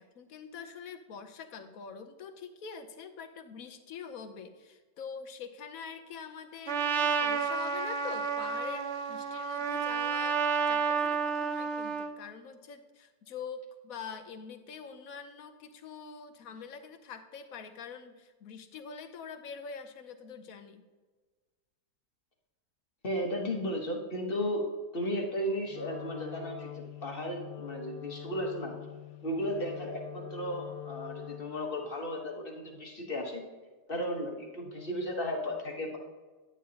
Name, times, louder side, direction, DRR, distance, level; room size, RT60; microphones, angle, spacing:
voice 1, 0.0-20.8, left 6 dB, 65° left, 8 dB, 1.0 m, -45 dB
Trumpet, 6.7-12.1, right 6 dB, 70° right, 0.6 m, -30 dB
voice 2, 23.0-24.7 24.9-28.8 29.2-33.4 33.9-36.0, equal, 35° left, 1 dB, 1.1 m, -34 dB
Wind instrument woodwind instrument, 25.7-31.7, left 10 dB, 80° left, 1.3 m, -44 dB
10.5 x 9.3 x 2.8 m, 1.3 s
omnidirectional pair, 1.9 m